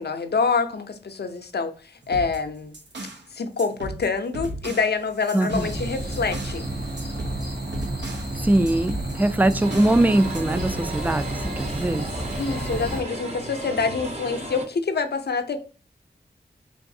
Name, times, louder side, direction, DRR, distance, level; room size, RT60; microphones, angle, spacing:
voice 1, 0.0-2.7 3.3-6.7 12.4-15.6, left 4 dB, 70° left, 0.5 m, -26 dB
sound 1, 2.0-3.3 3.6-6.6 7.0-8.3 8.7-10.0 10.3-10.8, right 1 dB, 90° right, 0.7 m, -37 dB
voice 2, 5.3-5.7 8.4-12.1, right 1 dB, 10° right, 0.3 m, -22 dB
sound 2, 5.5-13.0, right 1 dB, 65° right, 1.2 m, -31 dB
sound 3, 9.6-14.7, right 1 dB, 40° right, 0.8 m, -34 dB
3.8 x 3.5 x 2.6 m
wide cardioid pair, 55°, 18 cm